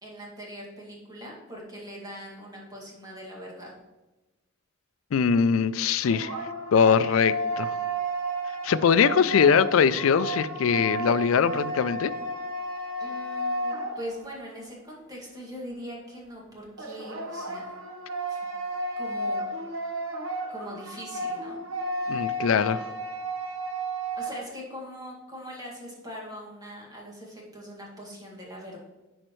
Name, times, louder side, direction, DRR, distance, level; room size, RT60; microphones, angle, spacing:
voice 1, 0.0-3.7 13.0-17.8 18.3-18.4 19.0-19.5 20.5-21.6 24.2-28.8, equal, 20° right, -3 dB, 2.0 m, -41 dB
voice 2, 5.1-6.3 6.7-7.7 8.6-12.1 22.1-22.8, left 6 dB, 75° left, 15 dB, 0.4 m, -22 dB
sound 1, 5.8-14.5 16.8-24.5, right 1 dB, 80° right, 1.0 m, -33 dB
11.0 x 4.4 x 3.1 m, 1.1 s
head